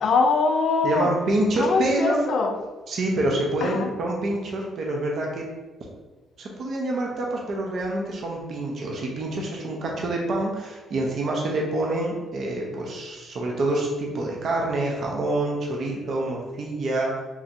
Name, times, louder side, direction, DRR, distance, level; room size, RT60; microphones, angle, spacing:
voice 1, 0.0-1.1 1.6-2.6 3.6-3.9, left 4 dB, 60° left, 5 dB, 0.4 m, -22 dB
voice 2, 0.8-2.2 2.9-5.4 6.4-17.2, right 2 dB, 60° right, -1 dB, 0.7 m, -26 dB
3.8 x 3.0 x 2.7 m, 1.2 s
cardioid pair, 90°, 0 cm